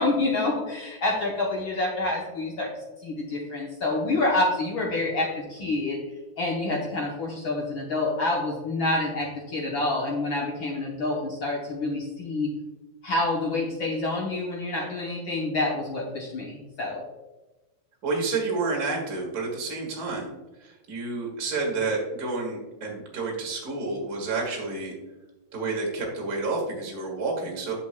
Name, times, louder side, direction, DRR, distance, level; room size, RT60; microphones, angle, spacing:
voice 1, 0.0-2.7 3.0-6.0 6.4-12.5 13.0-17.0, left 2 dB, 65° left, -1 dB, 1.2 m, -27 dB
voice 2, 18.0-20.3 20.6-24.9 25.5-27.7, right 3 dB, 35° right, -2 dB, 2.0 m, -29 dB
10.0 x 5.9 x 2.2 m, 1.1 s
omnidirectional pair, 3.3 m